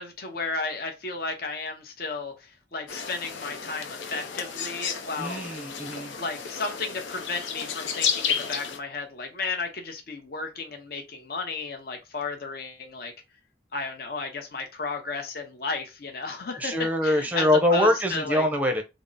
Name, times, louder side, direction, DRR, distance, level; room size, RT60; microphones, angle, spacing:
voice 1, 0.0-5.5 6.2-13.1 13.7-16.7 17.0-18.5, left 4 dB, 55° left, 0.8 m, -33 dB
sound 1, 2.9-8.8, left 7 dB, 90° left, 0.6 m, -32 dB
voice 2, 5.2-6.1 16.6-18.8, left 1 dB, 10° right, 0.6 m, -24 dB
3.6 x 2.0 x 3.9 m
head